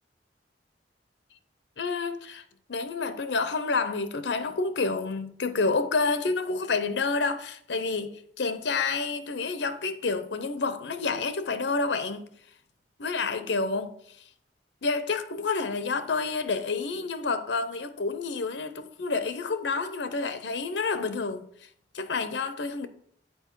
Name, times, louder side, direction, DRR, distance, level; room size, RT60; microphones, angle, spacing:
voice 1, 1.8-2.4 2.7-12.3 13.0-13.9 14.8-21.5 21.9-22.9, left 4 dB, 80° left, 0.7 m, -29 dB
7.8 x 4.6 x 4.5 m
head